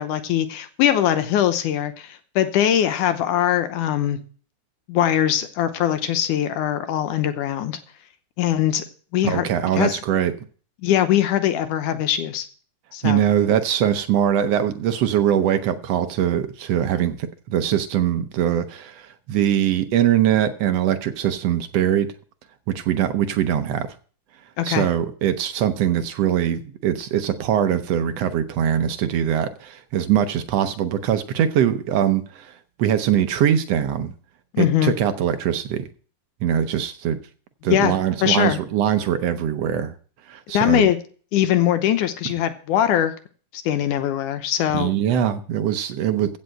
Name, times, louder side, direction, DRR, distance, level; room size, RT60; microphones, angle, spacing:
voice 1, 0.0-4.2 4.9-7.8 8.4-8.8 9.1-9.5 9.7-10.0 10.8-12.5 12.9-13.2 24.6-24.9 34.5-35.0 37.7-38.0 38.2-38.6 40.5-41.0 41.3-43.1 43.5-44.9, left 11 dB, 80° left, 2.4 m, -21 dB
voice 2, 9.2-10.3 13.0-22.1 22.7-23.9 24.6-32.5 32.8-34.1 34.6-35.9 36.4-37.2 37.6-39.9 40.3-40.9 44.7-46.4, right 10 dB, 70° right, 1.6 m, -22 dB
15.5 x 5.5 x 7.7 m
omnidirectional pair, 3.6 m